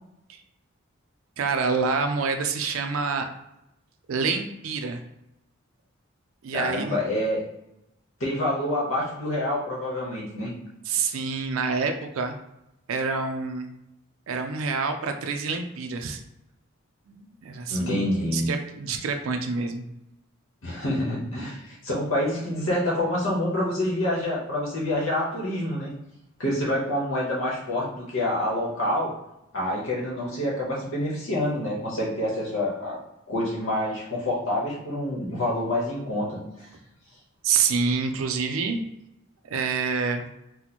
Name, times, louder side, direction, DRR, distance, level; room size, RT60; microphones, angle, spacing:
voice 1, 1.4-3.3 4.1-5.0 6.4-7.0 10.9-12.4 12.9-13.7 14.3-16.2 17.1-19.8 37.4-38.8 39.5-40.3, right 5 dB, 85° right, 5 dB, 0.4 m, -27 dB
voice 2, 6.5-7.4 8.2-10.5 17.7-18.5 20.6-25.9 26.4-29.1 29.5-33.0 33.3-36.7, left 1 dB, 70° left, -5 dB, 0.9 m, -27 dB
2.9 x 2.1 x 4.1 m, 0.87 s
head